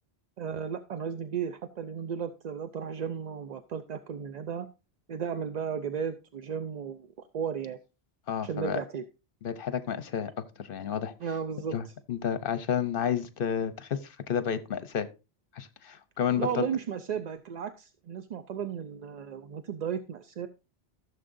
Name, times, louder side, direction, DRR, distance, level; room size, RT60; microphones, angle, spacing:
voice 1, 0.4-4.7 5.1-7.1 7.3-7.8 8.4-9.0 11.2-11.9 16.4-20.5, right 7 dB, 50° right, 9 dB, 0.5 m, -34 dB
voice 2, 8.3-8.8 9.4-11.1 11.7-15.1 15.5-16.7, left 8 dB, 60° left, 13 dB, 0.8 m, -31 dB
15.0 x 6.9 x 2.6 m, 0.29 s
omnidirectional pair, 1.1 m